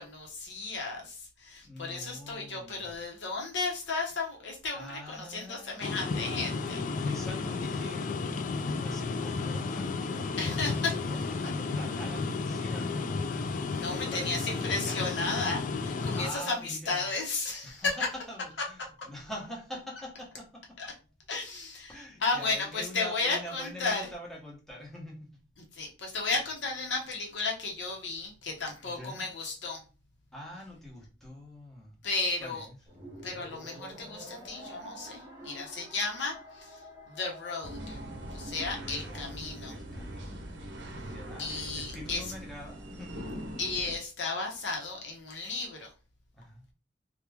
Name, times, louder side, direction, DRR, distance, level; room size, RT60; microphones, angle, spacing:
voice 1, 0.0-6.8 10.4-11.3 13.7-18.0 20.8-20.9 21.3-24.1 25.7-29.8 32.0-32.7 33.2-36.8 37.1-38.0 38.3-39.7 41.4-42.3 43.6-45.9, left 3 dB, 85° left, 0 dB, 0.9 m, -34 dB
voice 2, 1.6-3.0 4.7-8.2 8.7-15.3 16.2-17.1 17.6-20.6 21.9-25.3 28.8-29.3 30.3-31.9 32.4-32.8 38.7-39.3 39.7-40.6 41.0-43.2 46.3-46.6, left 1 dB, ahead, -4 dB, 1.0 m, -45 dB
sound 1, 5.8-16.3, left 4 dB, 45° left, 0.3 m, -32 dB
sound 2, 32.9-39.4, equal, 20° right, 1.1 m, -49 dB
sound 3, 37.6-44.0, right 1 dB, 70° right, 0.6 m, -42 dB
2.9 x 2.4 x 3.4 m, 0.34 s
head